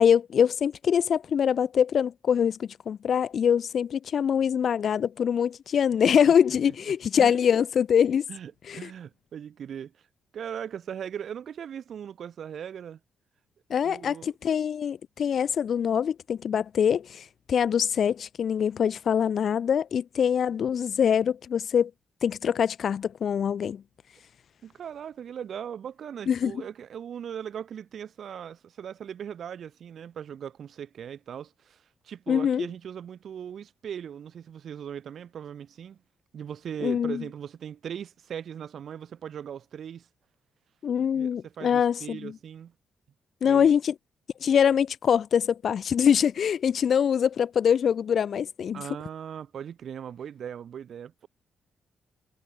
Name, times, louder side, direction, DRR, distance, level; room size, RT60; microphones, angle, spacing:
voice 1, 0.0-8.2 8.7-8.9 13.7-21.9 22.2-23.8 26.3-26.5 32.3-32.7 36.8-37.2 40.8-42.3 43.4-43.9 44.4-48.8, left 8 dB, 55° left, 0.7 m, -24 dB
voice 2, 8.3-10.0 10.3-13.0 13.8-14.3 24.6-36.0 36.3-40.1 41.0-42.7 43.4-43.7 48.7-51.3, right 8 dB, 60° right, 3.4 m, -39 dB
cardioid pair, 95°, 0 cm